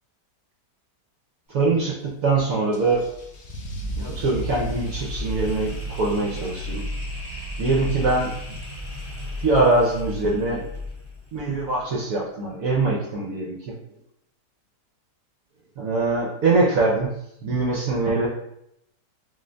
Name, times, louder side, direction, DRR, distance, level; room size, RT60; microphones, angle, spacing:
voice 1, 1.5-3.0 4.0-6.8 7.6-8.3 9.4-10.6 11.3-13.6 15.8-17.1 17.4-18.3, right 3 dB, 65° right, -3 dB, 1.0 m, -23 dB
Car / Engine starting / Accelerating revving vroom, 2.7-9.2, right 4 dB, 65° left, 1.1 m, -37 dB
sound 1, 2.9-12.0, left 3 dB, 10° left, 0.7 m, -35 dB
3.7 x 2.5 x 3.3 m, 0.78 s
omnidirectional pair, 1.8 m